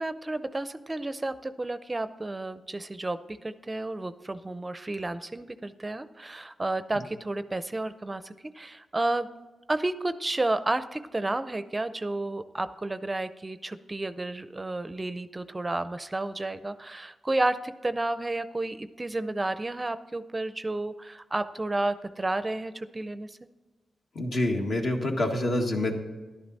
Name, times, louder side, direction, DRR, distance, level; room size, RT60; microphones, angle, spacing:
voice 1, 0.0-9.3 9.7-23.4, right 2 dB, 25° right, 13 dB, 0.5 m, -31 dB
voice 2, 24.1-26.0, left 1 dB, 65° left, 1 dB, 1.7 m, -27 dB
11.5 x 10.5 x 4.0 m, 1.3 s
cardioid pair, 60°, 0 cm